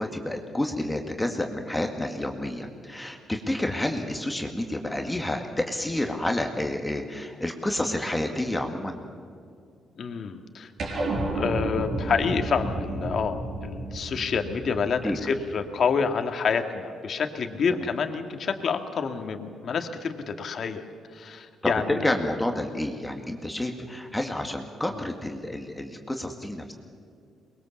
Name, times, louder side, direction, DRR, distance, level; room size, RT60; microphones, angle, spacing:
voice 1, 0.0-9.0 15.0-15.2 17.8-17.9 22.0-26.7, left 1 dB, 10° left, 3 dB, 2.0 m, -29 dB
voice 2, 9.9-10.7 11.3-13.4 13.6-20.9 21.1-22.2 24.9-25.0, left 6 dB, 55° left, 6 dB, 1.9 m, -28 dB
sound 1, 10.8-15.5, right 2 dB, 55° right, 6.1 m, -31 dB
23.5 x 21.5 x 7.3 m, 2.4 s
cardioid pair, 90°, 0 cm